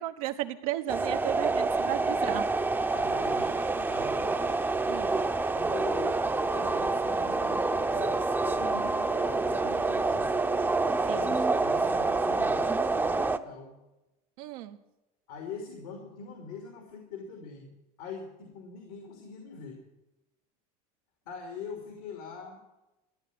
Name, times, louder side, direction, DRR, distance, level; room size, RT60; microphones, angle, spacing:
voice 1, 0.0-2.5 4.9-5.2 8.6-8.7 11.1-11.2 14.4-14.8, right 15 dB, 85° right, 7 dB, 1.2 m, -34 dB
sound 1, 0.9-13.4, right 3 dB, 10° right, 0.7 m, -27 dB
voice 2, 2.9-4.6 5.5-6.1 6.5-10.4 11.1-13.7 15.3-17.7 18.0-19.8 21.3-22.6, left 5 dB, 85° left, 2 dB, 2.9 m, -43 dB
13.5 x 9.2 x 8.5 m, 1.0 s
supercardioid pair, 105°, 19 cm